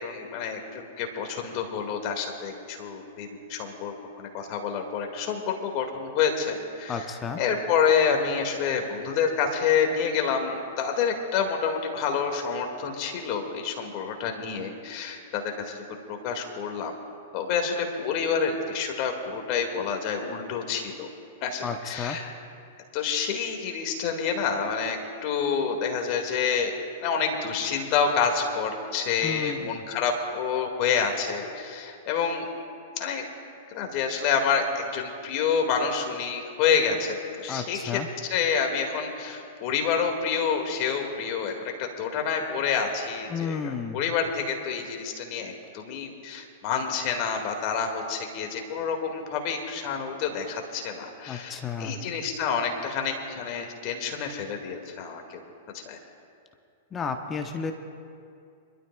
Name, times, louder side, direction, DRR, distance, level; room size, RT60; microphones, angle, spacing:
voice 1, 0.0-7.1 7.4-16.9 17.3-21.1 21.4-22.3 22.9-26.7 27.0-32.5 33.0-33.2 33.7-55.4 55.7-56.0, left 6 dB, 45° left, 3 dB, 2.1 m, -28 dB
voice 2, 6.9-7.4 21.6-22.2 29.2-29.7 37.5-38.1 43.3-44.0 51.3-52.0 56.9-57.7, left 5 dB, 25° left, 6 dB, 0.9 m, -32 dB
26.5 x 12.5 x 2.4 m, 2.5 s
hypercardioid pair, 105°, 0 cm